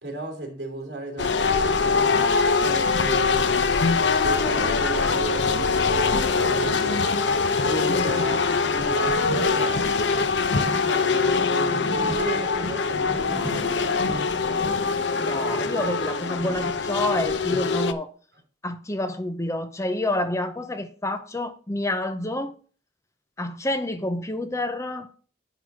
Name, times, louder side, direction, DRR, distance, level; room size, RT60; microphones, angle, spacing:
voice 1, 0.0-3.7 4.2-7.1 7.5-9.9 10.5-14.3, right 2 dB, 65° right, 3.0 m, -35 dB
sound 1, 1.2-17.9, left 4 dB, 75° left, 0.8 m, -23 dB
sound 2, 8.8-10.0 10.7-11.3 11.7-12.8 13.1-14.3, right 1 dB, 15° right, 0.7 m, -37 dB
voice 2, 15.2-18.1 18.6-22.5 23.4-25.1, left 1 dB, 15° left, 0.7 m, -28 dB
11.0 x 4.0 x 6.0 m
head